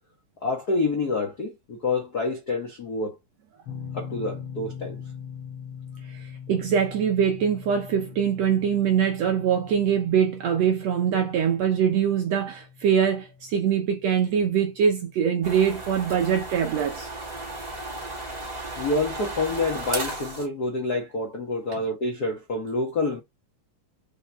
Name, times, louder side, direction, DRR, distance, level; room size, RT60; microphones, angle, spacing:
voice 1, 0.4-3.2 3.9-5.0 18.8-23.2, left 3 dB, 70° left, 0.9 m, -27 dB
sound 1, 3.7-16.6, left 7 dB, 45° left, 2.2 m, -43 dB
voice 2, 6.1-17.1 21.7-21.9, right 8 dB, 70° right, 1.6 m, -23 dB
sound 2, 15.4-20.5, right 2 dB, 15° right, 1.4 m, -34 dB
6.3 x 4.4 x 3.4 m
omnidirectional pair, 3.9 m